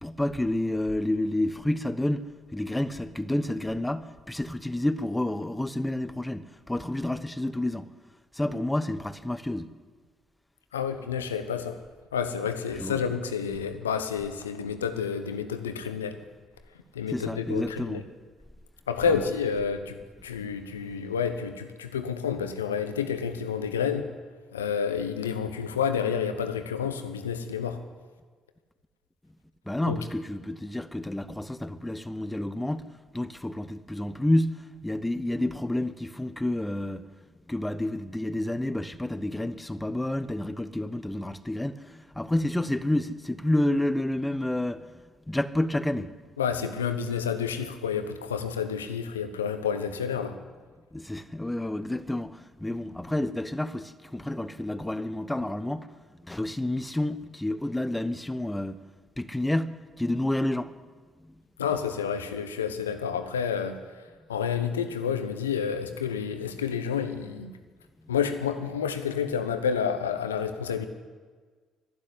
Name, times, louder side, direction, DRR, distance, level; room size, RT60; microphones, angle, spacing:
voice 1, 0.0-7.9 8.3-9.7 12.8-13.0 17.1-18.0 19.1-19.3 29.7-37.0 37.5-45.0 45.3-46.2 50.9-55.9 56.1-58.8 59.2-60.7 61.2-61.3, left 1 dB, 10° left, 1.1 m, -29 dB
voice 2, 10.7-11.8 12.1-16.2 16.9-18.0 18.9-24.1 24.5-27.8 29.9-30.0 46.4-50.3 61.6-64.0 64.3-67.5 68.1-70.9, left 7 dB, 85° left, 1.0 m, -29 dB
12.5 x 12.0 x 9.8 m
hypercardioid pair, 50°, 0 cm